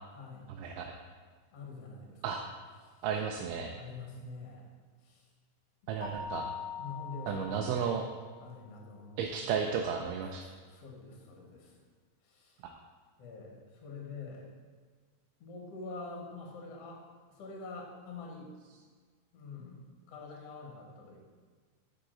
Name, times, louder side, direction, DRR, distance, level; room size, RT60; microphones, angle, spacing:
voice 1, 0.1-0.6 1.5-2.5 2.8-2.9 3.7-4.7 5.0-5.3 6.3-6.5 6.8-7.9 8.4-9.4 10.7-11.8 12.2-12.6 13.2-14.5 15.4-17.0 17.3-18.7 19.3-19.8 20.1-21.2, left 3 dB, 60° left, 0 dB, 1.9 m, -46 dB
voice 2, 3.0-3.7 5.9-6.5 7.3-8.1 9.2-10.4, right 7 dB, 85° right, 2 dB, 2.1 m, -33 dB
Keyboard (musical), 6.0-8.4, left 5 dB, 10° left, 1.0 m, -42 dB
10.0 x 4.8 x 3.8 m, 1.5 s
omnidirectional pair, 3.7 m